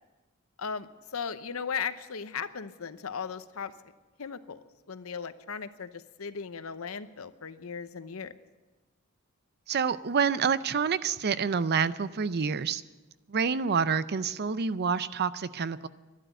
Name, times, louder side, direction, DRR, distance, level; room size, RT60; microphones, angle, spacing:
voice 1, 0.6-3.7 4.2-4.6 4.9-8.3, left 6 dB, 75° left, 12 dB, 0.8 m, -37 dB
voice 2, 9.7-12.8 13.3-15.9, right 6 dB, 50° right, 15 dB, 0.5 m, -28 dB
12.0 x 11.5 x 9.0 m, 1.2 s
head